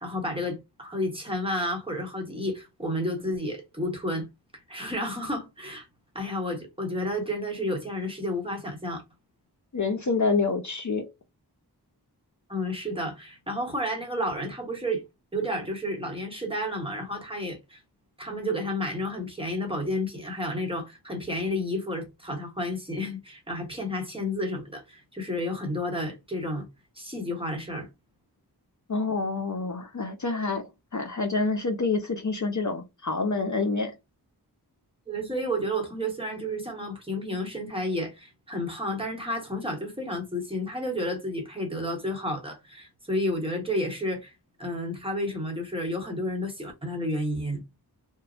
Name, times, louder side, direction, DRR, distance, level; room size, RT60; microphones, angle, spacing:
voice 1, 0.0-4.3 4.5-5.9 6.1-9.0 12.5-15.0 15.3-17.8 18.2-26.7 27.0-27.9 35.1-44.3 44.6-47.6, left 1 dB, 15° right, 1.1 m, -31 dB
voice 2, 9.7-11.1 28.9-33.9, left 3 dB, 50° left, 0.6 m, -27 dB
3.0 x 2.1 x 2.5 m
wide cardioid pair, 40°, 40 cm